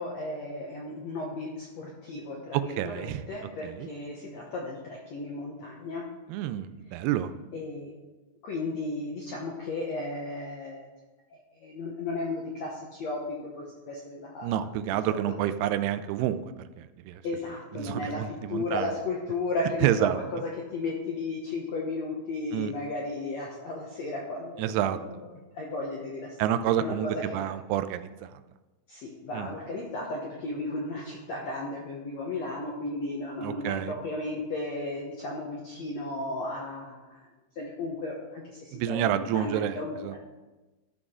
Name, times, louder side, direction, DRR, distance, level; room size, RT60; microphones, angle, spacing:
voice 1, 0.0-6.1 7.5-7.9 8.4-10.9 11.3-14.6 14.9-15.0 15.3-15.4 17.2-18.2 18.5-27.5 28.9-37.3 37.5-40.1, left 2 dB, 75° left, -2 dB, 1.6 m, -35 dB
voice 2, 2.5-3.3 3.6-3.9 6.3-7.3 14.4-16.4 16.8-17.2 17.7-18.9 19.8-20.2 22.5-22.7 24.6-25.0 26.4-28.4 29.3-29.5 33.4-33.9 38.7-40.2, right 11 dB, 90° right, 11 dB, 2.6 m, -29 dB
13.0 x 6.1 x 3.7 m, 1.1 s
omnidirectional pair, 4.5 m